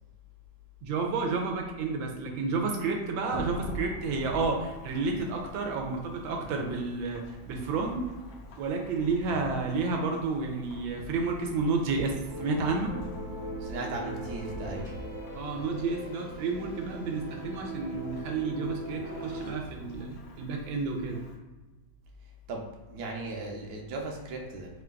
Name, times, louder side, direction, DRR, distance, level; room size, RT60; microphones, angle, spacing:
voice 1, 0.8-8.1 8.6-12.9 15.3-21.2, right 4 dB, 85° right, 2 dB, 1.4 m, -31 dB
Thunderstorm / Rain, 3.3-21.4, equal, 80° left, 1.4 m, -45 dB
sound 1, 12.3-19.5, right 1 dB, 60° left, 0.3 m, -39 dB
voice 2, 13.6-14.9 22.5-24.7, right 3 dB, 65° right, 0 dB, 1.1 m, -37 dB
4.5 x 2.2 x 3.7 m, 1.2 s
omnidirectional pair, 2.2 m